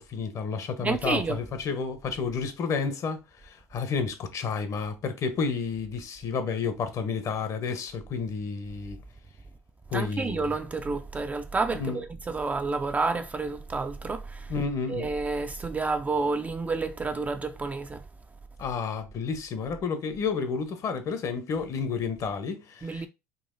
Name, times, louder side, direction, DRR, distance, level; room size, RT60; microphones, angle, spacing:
voice 1, 0.0-9.0 9.9-10.5 11.7-12.0 14.5-15.1 18.6-23.1, left 5 dB, 45° left, 0.7 m, -31 dB
voice 2, 0.8-1.4 9.9-14.5 14.9-18.0 22.8-23.1, right 3 dB, 20° right, 0.3 m, -29 dB
3.9 x 2.5 x 2.5 m
supercardioid pair, 90°, 8 cm